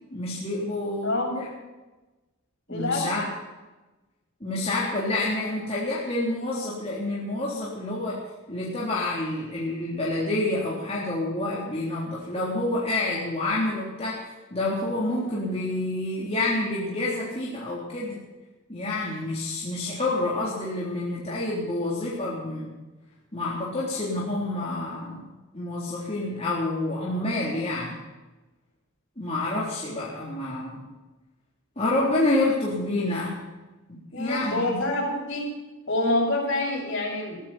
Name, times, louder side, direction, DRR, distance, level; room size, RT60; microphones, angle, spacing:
voice 1, 0.1-1.5 2.7-3.3 4.4-8.2 8.5-14.2 14.5-18.2 18.7-22.7 23.3-25.3 25.5-28.0 29.2-30.8 31.8-33.4 33.9-34.8, left 2 dB, 30° left, -6 dB, 3.7 m, -28 dB
voice 2, 1.0-1.4 2.7-3.2 34.1-35.5 35.9-37.5, left 2 dB, 60° left, -2 dB, 7.7 m, -27 dB
22.5 x 14.0 x 4.5 m, 1.1 s
head